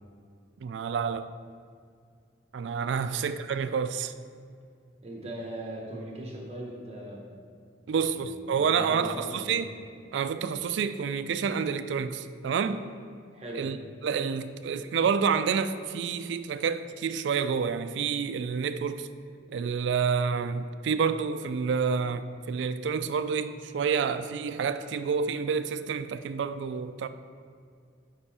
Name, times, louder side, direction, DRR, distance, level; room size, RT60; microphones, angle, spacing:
voice 1, 0.6-1.3 2.5-4.1 7.9-9.7 10.1-12.8 13.5-13.8 14.0-19.1 19.5-27.1, right 6 dB, 70° right, 11 dB, 0.3 m, -28 dB
voice 2, 5.0-7.2 7.8-8.2 8.5-9.6 13.3-13.6, right 1 dB, 35° right, -2 dB, 1.1 m, -39 dB
6.8 x 5.5 x 4.2 m, 2.2 s
head